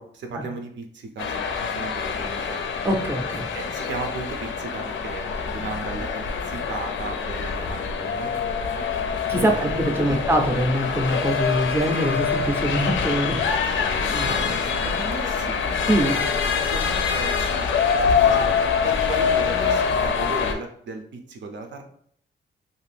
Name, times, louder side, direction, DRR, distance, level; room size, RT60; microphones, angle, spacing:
voice 1, 0.0-2.7 3.5-8.3 9.3-10.2 14.2-15.6 16.0-18.6 18.8-21.8, right 3 dB, 70° right, 3 dB, 0.6 m, -36 dB
sound 1, 1.2-20.5, left 6 dB, 80° left, 0.5 m, -25 dB
voice 2, 2.8-3.5 9.3-14.4 15.8-16.1, right 1 dB, 10° right, 2 dB, 0.5 m, -24 dB
2.6 x 2.5 x 3.3 m, 0.63 s
wide cardioid pair, 120°, 20 cm